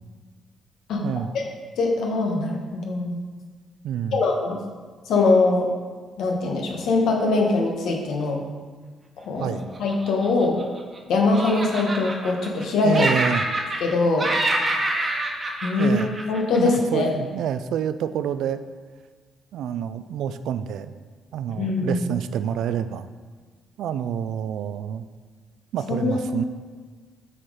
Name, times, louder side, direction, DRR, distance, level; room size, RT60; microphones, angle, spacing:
voice 1, 1.0-1.3 3.8-4.2 9.4-9.6 12.8-13.5 15.8-16.1 16.6-18.6 19.5-20.9 21.3-23.1 23.8-25.1 25.7-26.4, right 9 dB, 80° right, 12 dB, 0.3 m, -27 dB
voice 2, 1.8-3.2 4.1-4.6 5.1-5.7 6.2-8.4 9.2-10.6 11.1-13.1 13.8-14.3 15.6-16.0 16.3-17.1 21.6-22.0 25.9-26.3, left 3 dB, 75° left, 1 dB, 1.3 m, -22 dB
Laughter, 9.7-11.0 11.3-12.6 12.9-13.9 14.2-16.8, right 2 dB, 30° right, 1.1 m, -26 dB
7.5 x 4.4 x 4.8 m, 1.5 s
cardioid pair, 90°, 0 cm